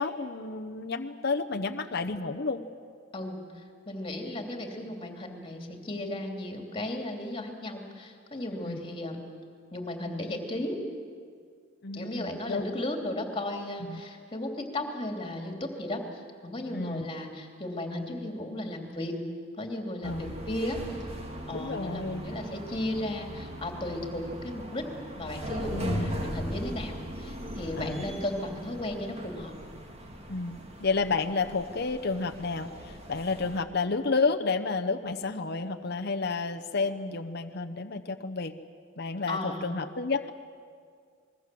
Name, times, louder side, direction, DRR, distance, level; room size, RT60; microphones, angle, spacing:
voice 1, 0.0-2.6 8.6-8.8 11.8-12.6 13.9-14.0 16.7-17.1 20.0-20.3 21.5-22.2 25.7-26.2 27.8-28.0 30.3-38.5 39.0-40.3, left 4 dB, 55° left, 6 dB, 0.9 m, -31 dB
voice 2, 3.1-9.2 9.7-10.8 11.9-16.0 16.4-19.1 19.6-20.8 21.5-24.9 25.2-29.5 39.3-39.7, left 1 dB, 25° left, 3 dB, 2.9 m, -35 dB
sound 1, 20.0-33.6, equal, 30° right, 2.3 m, -39 dB
26.5 x 21.0 x 7.7 m, 2.1 s
head